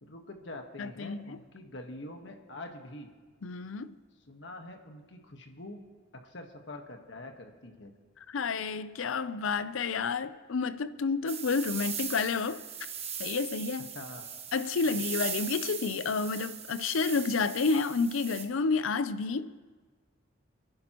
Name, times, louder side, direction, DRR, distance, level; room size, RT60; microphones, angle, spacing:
voice 1, 0.0-3.1 4.3-5.8 6.1-7.9 13.9-14.3, left 2 dB, 65° left, 1.4 m, -45 dB
voice 2, 0.8-1.4 3.4-4.0 8.3-12.6 13.2-13.9 14.5-19.6, left 4 dB, 90° left, 0.5 m, -30 dB
sound 1, 11.3-18.4, right 7 dB, 30° right, 1.1 m, -39 dB
29.5 x 10.5 x 3.0 m
head